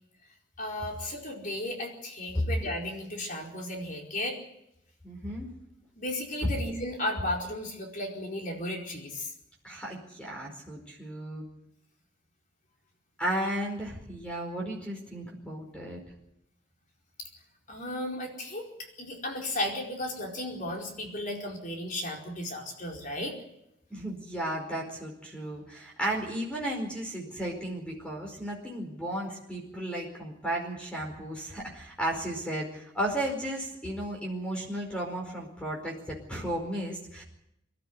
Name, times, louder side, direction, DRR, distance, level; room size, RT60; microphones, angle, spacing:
voice 1, 0.6-4.4 6.0-9.3 17.2-17.3 17.7-18.7 19.0-23.4, left 1 dB, 45° left, 0 dB, 4.7 m, -34 dB
voice 2, 5.0-5.5 9.6-11.4 13.2-16.0 23.9-37.2, right 1 dB, 5° left, 0 dB, 4.8 m, -34 dB
25.0 x 13.0 x 9.8 m, 0.80 s
head